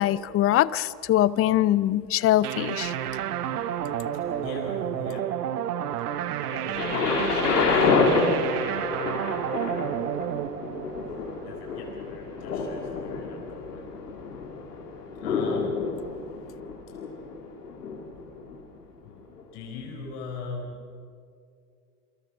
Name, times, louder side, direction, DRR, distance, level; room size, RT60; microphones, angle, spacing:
voice 1, 0.0-2.9, left 13 dB, 30° left, 19 dB, 0.6 m, -22 dB
sound 1, 2.4-11.8, right 10 dB, 75° right, 1.2 m, -31 dB
voice 2, 4.4-5.3 6.0-8.0 8.6-9.5 11.4-13.9 15.2-15.8 19.0-19.2 19.5-20.8, left 4 dB, 60° left, 1 dB, 4.6 m, -41 dB
Thunder, 6.8-18.6 19.4-19.5, left 4 dB, 80° left, 3.6 m, -28 dB
28.0 x 22.5 x 6.1 m, 2.3 s
hypercardioid pair, 80°, 47 cm